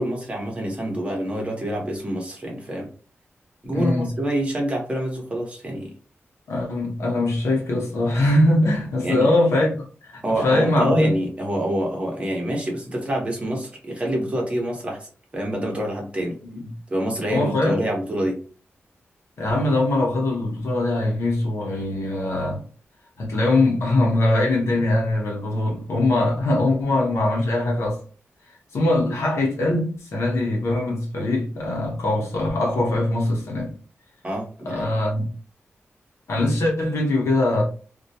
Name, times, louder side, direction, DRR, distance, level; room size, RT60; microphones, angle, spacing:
voice 1, 0.0-2.9 3.6-5.9 9.0-9.3 10.2-15.1 15.3-16.4 16.9-18.4 34.2-34.9, right 1 dB, 25° right, 0.9 m, -26 dB
voice 2, 3.7-4.1 6.5-11.1 16.4-16.7 17.3-17.8 19.4-22.6 23.2-28.0 28.7-33.7 34.6-35.3 36.3-37.6, left 2 dB, 80° left, 0.8 m, -22 dB
2.2 x 2.2 x 2.7 m
wide cardioid pair, 120°, 5 cm